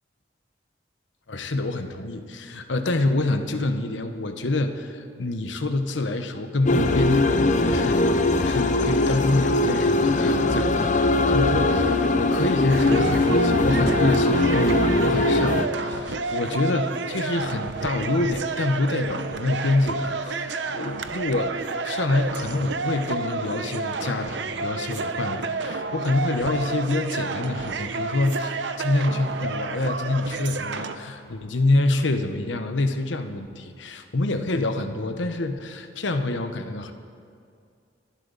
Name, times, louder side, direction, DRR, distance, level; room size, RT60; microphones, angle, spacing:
voice 1, 1.3-36.9, left 2 dB, 80° left, 7 dB, 1.0 m, -26 dB
sound 1, 6.7-15.7, left 2 dB, 40° left, 0.6 m, -21 dB
sound 2, 12.7-31.0, right 3 dB, 70° right, 0.7 m, -30 dB
25.0 x 11.5 x 4.0 m, 2.3 s
head